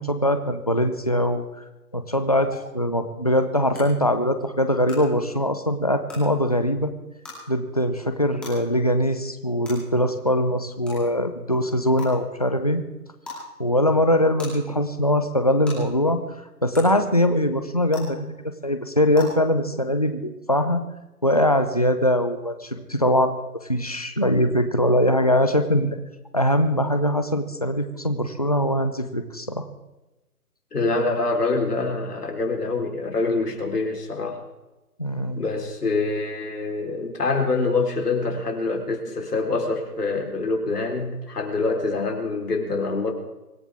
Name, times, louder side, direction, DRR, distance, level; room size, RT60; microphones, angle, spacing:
voice 1, 0.0-1.4 1.9-6.9 7.5-12.8 13.3-16.2 16.6-18.2 18.6-20.8 21.2-23.4 23.7-26.0 26.3-29.7 35.0-35.4, equal, 25° left, 8 dB, 0.6 m, -22 dB
sound 1, 2.5-2.6 3.7-3.8 4.8-4.9 6.0-6.2 7.2-7.3 8.4-8.5 9.6-9.7 10.8-11.0 12.0-12.1 13.2-13.4 14.4-14.5 15.6-15.7 16.7-16.8 17.9-18.0 19.1-19.2, left 4 dB, ahead, 2.6 m, -37 dB
voice 2, 30.7-34.4 35.4-43.1, left 3 dB, 75° left, 2 dB, 4.1 m, -25 dB
25.0 x 14.0 x 3.5 m, 1.0 s
hypercardioid pair, 170°, 47 cm